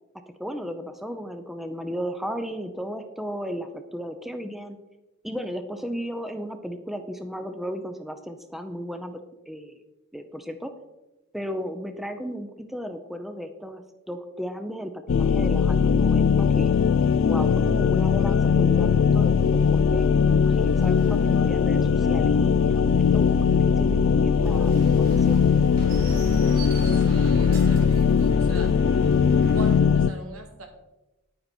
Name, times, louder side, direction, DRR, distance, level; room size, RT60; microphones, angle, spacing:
voice 1, 0.4-4.8 5.2-9.7 10.1-10.7 11.3-13.8 14.1-16.7 17.2-23.5 23.8-25.4, equal, ahead, 7 dB, 0.6 m, -35 dB
sound 1, 15.1-30.1, left 6 dB, 60° left, 0.4 m, -20 dB
sound 2, 18.7-29.8, equal, 45° right, 3.0 m, -38 dB
voice 2, 26.9-28.7 29.5-30.7, right 2 dB, 80° right, 3 dB, 2.3 m, -40 dB
10.5 x 9.4 x 4.4 m, 1.0 s
head